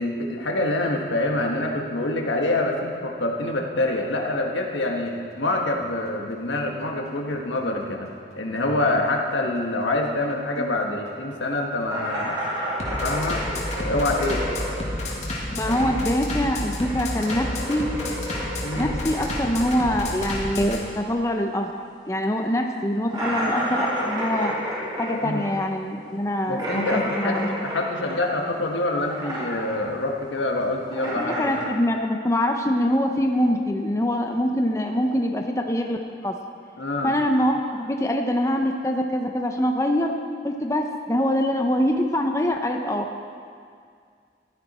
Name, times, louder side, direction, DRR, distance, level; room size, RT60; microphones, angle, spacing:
voice 1, 0.0-8.1 8.3-12.4 12.9-13.5 13.8-14.5 15.5-15.9 18.6-18.9 25.2-25.4 26.5-31.4 36.8-37.1, left 2 dB, 90° left, 1 dB, 1.5 m, -26 dB
Bass drum, 4.8-20.8, left 1 dB, 40° left, 1.9 m, -31 dB
sound 1, 11.9-16.2 16.4-21.5 21.7-21.8 22.2-22.3 23.1-28.7 28.9-29.9 30.2-31.6, equal, 25° right, 3.0 m, -31 dB
voice 2, 15.5-17.9 18.8-21.7 22.1-24.5 25.0-27.5 31.1-36.0 36.2-36.3 37.0-40.1 40.4-43.0, equal, 15° left, 3 dB, 0.6 m, -24 dB
14.5 x 12.0 x 4.3 m, 2.2 s
head